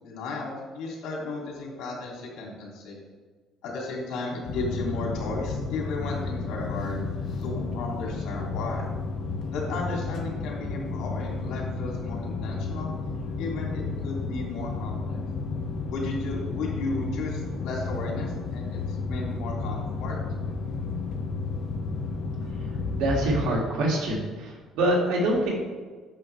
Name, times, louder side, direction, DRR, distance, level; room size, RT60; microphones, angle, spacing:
voice 1, 0.0-3.0 3.6-7.0 7.4-8.9 9.5-12.9 13.4-15.2 15.9-20.2, left 3 dB, 75° left, -2 dB, 2.6 m, -34 dB
sound 1, 4.4-23.5, left 3 dB, 55° left, 1.2 m, -32 dB
voice 2, 22.9-25.5, right 1 dB, 85° right, -2 dB, 2.2 m, -25 dB
8.9 x 6.6 x 3.3 m, 1.4 s
cardioid pair, 130°, 0 cm